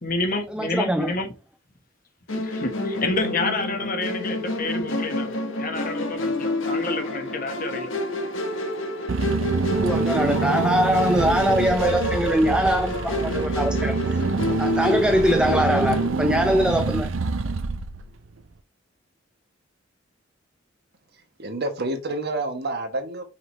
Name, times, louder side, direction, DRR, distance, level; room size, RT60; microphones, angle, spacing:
voice 1, 0.0-1.3 2.4-8.0, left 2 dB, 45° left, 1.4 m, -29 dB
voice 2, 0.5-1.1 9.8-14.2 14.6-17.1, equal, 5° right, 0.5 m, -22 dB
Musical instrument, 2.3-16.1, left 1 dB, 80° left, 1.4 m, -28 dB
Car / Engine, 9.1-18.3, right 3 dB, 85° right, 0.6 m, -26 dB
voice 3, 21.4-23.2, right 2 dB, 55° right, 1.3 m, -28 dB
5.7 x 4.9 x 3.3 m
head